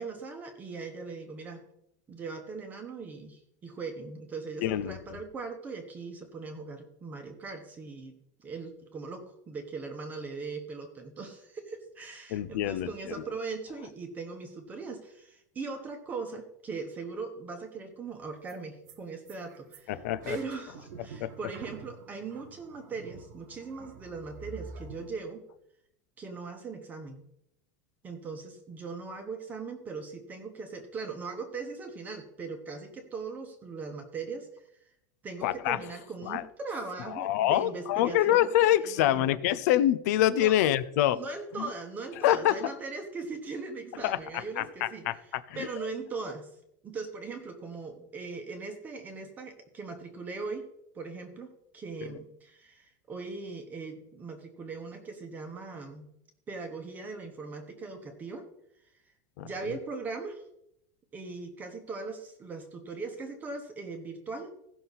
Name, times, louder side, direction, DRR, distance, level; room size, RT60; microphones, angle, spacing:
voice 1, 0.0-1.7 2.1-25.4 26.2-27.2 28.0-34.6 35.2-38.5 38.8-39.4 40.3-40.5 41.1-46.5 46.8-50.7 50.9-56.1 56.5-58.4 59.4-60.4 61.1-64.5, right 4 dB, 20° right, 5 dB, 1.1 m, -40 dB
voice 2, 4.6-5.0 12.3-13.2 19.9-20.4 21.2-21.3 35.4-35.8 36.3-36.4 37.1-41.2 41.6-41.7 42.2-42.6 44.0-45.7 59.4-59.5, left 13 dB, 65° left, 15 dB, 0.6 m, -26 dB
sound 1, 18.1-18.2 18.5-18.6 18.9-19.0 19.3-25.1, right 5 dB, 90° right, 1.4 m, -47 dB
16.0 x 6.0 x 4.0 m, 0.79 s
supercardioid pair, 165°, 9 cm